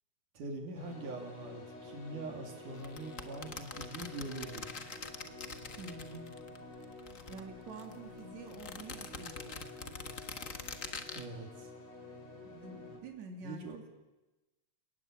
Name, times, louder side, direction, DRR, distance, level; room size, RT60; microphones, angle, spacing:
voice 1, 0.3-4.7 11.1-11.7 13.4-13.9, right 2 dB, 85° right, 4 dB, 4.2 m, -43 dB
sound 1, 0.8-13.0, left 2 dB, 60° left, 6.3 m, -50 dB
sound 2, 2.8-6.6 6.8-8.0 8.5-11.2, left 4 dB, 35° left, 1.4 m, -44 dB
voice 2, 5.8-6.3 7.3-9.6 12.4-13.8, right 3 dB, 65° right, 4 dB, 3.9 m, -48 dB
30.0 x 18.0 x 8.6 m, 1.1 s
omnidirectional pair, 3.5 m